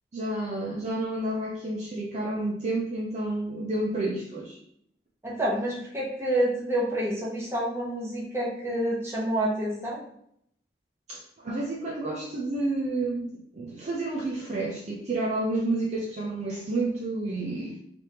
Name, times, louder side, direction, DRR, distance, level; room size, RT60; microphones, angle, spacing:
voice 1, 0.1-4.6 11.1-17.8, right 2 dB, 40° right, -3 dB, 0.5 m, -30 dB
voice 2, 5.2-10.0, right 1 dB, 15° right, -5 dB, 1.0 m, -28 dB
3.3 x 3.2 x 2.8 m, 0.71 s
head